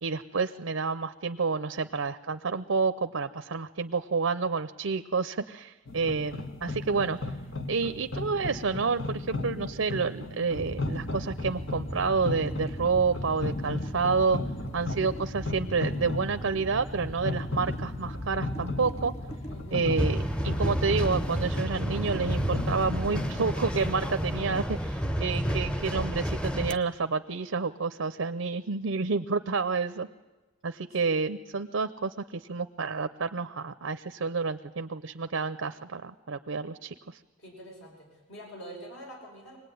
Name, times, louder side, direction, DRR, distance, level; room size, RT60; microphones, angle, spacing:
voice 1, 0.0-7.2 7.7-14.4 14.7-19.1 19.7-30.1 30.6-37.2, right 4 dB, 90° right, 10 dB, 0.7 m, -29 dB
sound 1, 5.9-24.6, left 2 dB, 90° left, 1.6 m, -36 dB
sound 2, 10.5-23.6, equal, 35° left, 2.2 m, -38 dB
voice 2, 19.5-19.8 31.0-31.2 37.4-39.6, right 1 dB, 70° left, 0 dB, 5.7 m, -46 dB
sound 3, 20.0-26.8, equal, 5° left, 0.7 m, -30 dB
24.0 x 19.5 x 9.4 m, 1.2 s
head